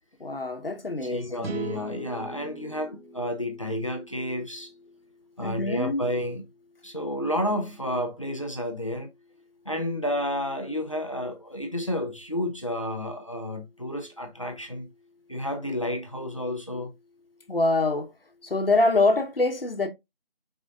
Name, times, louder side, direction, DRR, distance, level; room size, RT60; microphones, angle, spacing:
voice 1, 0.2-1.6 5.4-6.0 17.5-18.1 18.4-19.9, left 2 dB, 65° left, 1.2 m, -25 dB
voice 2, 1.0-4.7 5.4-6.4 6.8-9.1 9.6-14.9 15.3-16.9, left 1 dB, 35° left, 0.7 m, -31 dB
sound 1, 1.4-4.7, right 2 dB, 80° right, 0.7 m, -40 dB
4.9 x 3.9 x 2.5 m
figure-of-eight pair, 175°, 30 cm